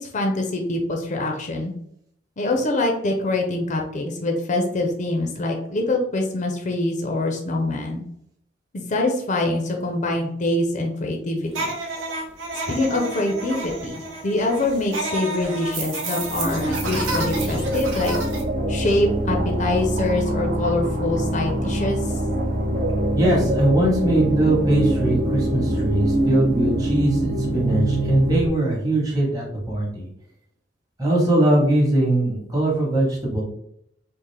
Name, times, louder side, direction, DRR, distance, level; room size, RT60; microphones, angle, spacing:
voice 1, 0.0-1.7 2.4-8.0 8.7-11.7 12.7-18.1 18.7-22.1, left 2 dB, 40° left, 2 dB, 0.5 m, -24 dB
sound 1, 11.5-18.4, right 2 dB, 90° right, 0.8 m, -30 dB
sound 2, 16.1-28.5, right 1 dB, 45° right, 0.5 m, -24 dB
voice 2, 23.1-30.1 31.0-33.4, right 1 dB, 20° right, -4 dB, 1.0 m, -21 dB
3.7 x 2.4 x 3.2 m, 0.73 s
head